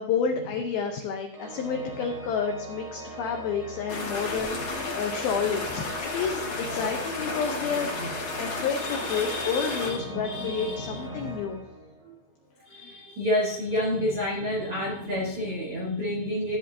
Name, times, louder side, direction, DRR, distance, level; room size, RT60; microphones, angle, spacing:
voice 1, 0.0-7.9 8.4-11.6, left 6 dB, 80° left, 3 dB, 2.2 m, -30 dB
Organ, 1.3-12.2, equal, 20° right, 1.5 m, -41 dB
sound 1, 3.9-9.9, left 3 dB, 55° left, 1.4 m, -33 dB
voice 2, 8.8-11.3 12.0-12.1 12.7-16.6, left 1 dB, 85° right, -3 dB, 1.2 m, -30 dB
14.5 x 7.6 x 2.8 m, 0.79 s
omnidirectional pair, 5.4 m